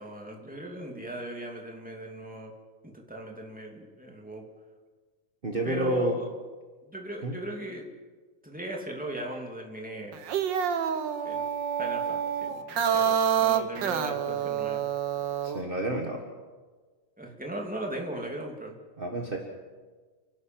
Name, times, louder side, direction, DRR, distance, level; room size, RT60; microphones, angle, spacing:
voice 1, 0.0-2.5 2.8-4.4 5.6-6.2 6.9-7.9 8.4-10.3 11.2-11.5 11.8-14.9 17.2-18.7, right 1 dB, 5° right, 0 dB, 2.3 m, -38 dB
voice 2, 5.4-6.1 7.2-7.3 15.4-16.2 19.0-19.4, right 2 dB, 30° right, 1 dB, 1.0 m, -29 dB
sound 1, 10.1-15.6, right 8 dB, 80° right, 1.0 m, -28 dB
29.0 x 11.5 x 7.7 m, 1.4 s
omnidirectional pair, 3.6 m